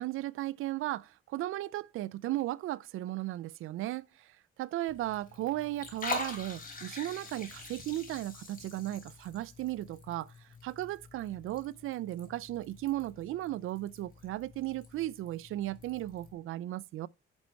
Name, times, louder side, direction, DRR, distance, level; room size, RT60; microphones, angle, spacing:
voice 1, 0.0-4.3 4.6-17.1, right 15 dB, 85° right, 0.5 m, -36 dB
Liquid, 4.9-16.3, left 4 dB, 45° left, 4.4 m, -45 dB
10.5 x 6.3 x 4.5 m
cardioid pair, 115°, 21 cm